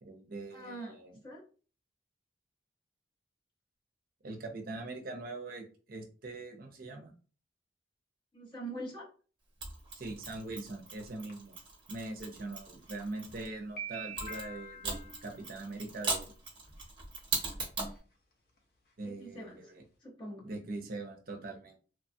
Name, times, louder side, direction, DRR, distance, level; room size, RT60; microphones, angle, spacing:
voice 1, 0.0-1.2 4.2-7.1 9.9-11.6 11.9-16.3 19.0-19.8 20.4-21.8, right 2 dB, 50° right, 3 dB, 0.5 m, -42 dB
voice 2, 0.5-0.9 1.2-1.4 8.3-9.0 19.0-19.6 20.0-20.4, right 1 dB, 30° left, -4 dB, 1.0 m, -43 dB
Mechanisms, 9.6-13.5 14.2-18.0, right 3 dB, 25° right, 0.9 m, -39 dB
sound 1, 10.2-10.3 11.3-11.4 12.6-12.7 13.2-13.3 13.6-15.6 16.7-16.8 17.2-17.3 17.6-18.0 18.3-18.4 18.6-18.7 19.0-19.1, right 3 dB, 55° left, 0.6 m, -44 dB
3.1 x 2.2 x 2.6 m, 0.39 s
head